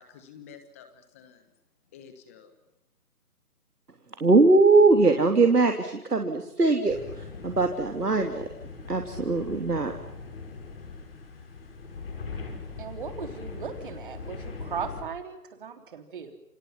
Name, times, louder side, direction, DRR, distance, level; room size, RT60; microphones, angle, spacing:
voice 1, 0.0-1.4 1.9-2.5, left 7 dB, 10° left, 9 dB, 1.2 m, -50 dB
voice 2, 4.2-7.0 7.4-8.4 8.9-9.9, right 3 dB, 80° right, 4 dB, 3.3 m, -21 dB
sound 1, 6.9-15.0, left 4 dB, 40° left, 6.0 m, -40 dB
voice 3, 12.8-16.3, right 6 dB, 35° right, 7 dB, 3.6 m, -37 dB
29.5 x 26.0 x 5.7 m, 0.83 s
figure-of-eight pair, 155°, 46 cm